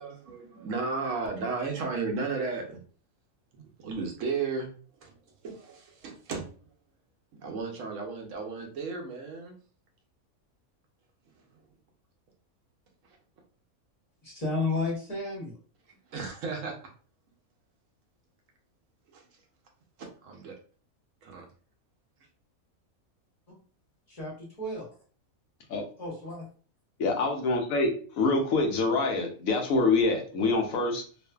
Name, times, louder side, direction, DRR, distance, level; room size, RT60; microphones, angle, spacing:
voice 1, 0.0-2.8 3.5-4.7 5.0-5.2 5.4-6.7 7.3-9.6 11.5-11.6 15.9-16.8 19.1-19.3 20.0-20.5 21.2-21.4, right 4 dB, 70° right, 1 dB, 0.9 m, -34 dB
voice 2, 14.2-15.5 24.1-24.9 26.0-26.4, left 3 dB, 30° left, -5 dB, 1.0 m, -32 dB
voice 3, 27.0-31.0, left 3 dB, 75° left, 2 dB, 1.0 m, -26 dB
2.6 x 2.4 x 2.2 m, 0.42 s
omnidirectional pair, 1.5 m